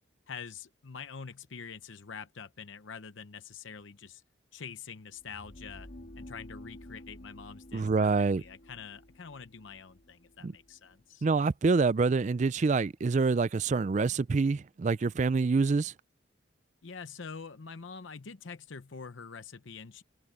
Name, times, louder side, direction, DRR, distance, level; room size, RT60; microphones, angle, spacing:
voice 1, 0.3-4.2 4.5-5.9 6.2-11.3 16.8-20.0, left 5 dB, 70° left, 0.8 m, -45 dB
sound 1, 5.1-11.0, left 1 dB, 50° left, 2.9 m, -51 dB
voice 2, 7.7-8.4 10.4-10.5 11.2-15.9, right 4 dB, 35° right, 0.3 m, -26 dB
head